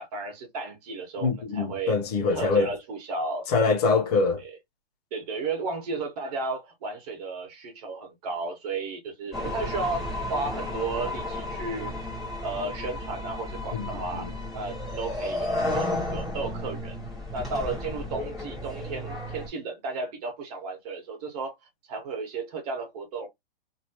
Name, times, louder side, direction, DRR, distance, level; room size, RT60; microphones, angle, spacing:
voice 1, 0.0-2.0 2.3-3.5 4.4-4.6 5.1-11.9 12.4-14.3 14.5-17.0 17.3-21.5 21.9-23.3, right 3 dB, 40° right, 1.4 m, -34 dB
voice 2, 1.2-2.7 3.5-4.4 13.7-14.2, left 4 dB, 40° left, 0.9 m, -24 dB
sound 1, 9.3-19.5, left 1 dB, ahead, 1.4 m, -33 dB
3.0 x 2.8 x 2.9 m
hypercardioid pair, 150°, 30 cm